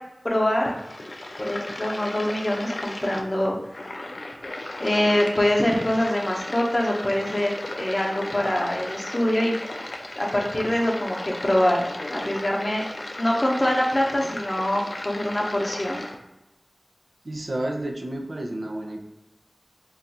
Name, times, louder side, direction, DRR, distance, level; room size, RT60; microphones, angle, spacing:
voice 1, 0.2-0.7 1.4-3.9 4.8-9.5 10.2-12.8 13.2-16.0, left 1 dB, 40° left, -1 dB, 0.7 m, -24 dB
sound 1, 0.6-16.2, left 1 dB, 75° left, 0.4 m, -36 dB
voice 2, 17.2-19.0, right 1 dB, 70° right, 1 dB, 0.4 m, -30 dB
2.5 x 2.3 x 4.1 m, 0.94 s
wide cardioid pair, 45°, 0 cm